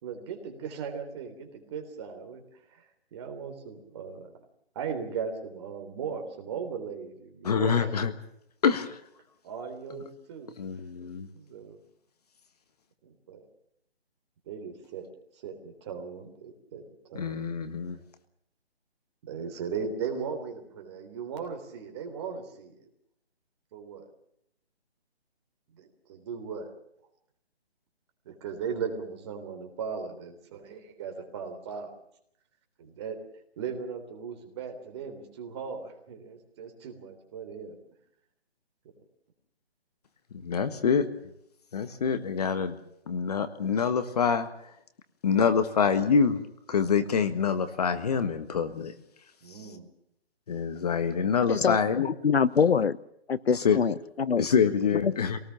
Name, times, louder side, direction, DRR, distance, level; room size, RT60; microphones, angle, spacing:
voice 1, 0.0-2.4 2.7-2.8 3.1-4.3 4.7-7.9 9.4-10.8 11.3-11.8 13.0-13.5 14.5-15.1 15.4-16.8 17.1-17.4 19.3-22.8 23.7-24.1 25.8-26.7 28.2-31.9 32.8-33.2 33.6-37.7 49.4-49.9, right 6 dB, 25° right, 5 dB, 3.4 m, -37 dB
voice 2, 7.4-8.1 8.6-9.0 10.6-11.3 17.1-18.0 40.4-41.0 41.7-42.8 43.1-44.5 45.2-46.4 46.7-48.9 50.5-52.1 53.5-53.8 54.4-55.4, left 6 dB, 35° left, 10 dB, 1.6 m, -26 dB
voice 3, 52.0-53.0 53.3-54.4 55.0-55.1, left 6 dB, 70° left, 18 dB, 1.0 m, -24 dB
24.0 x 18.5 x 7.3 m, 0.73 s
hypercardioid pair, 160°, 32 cm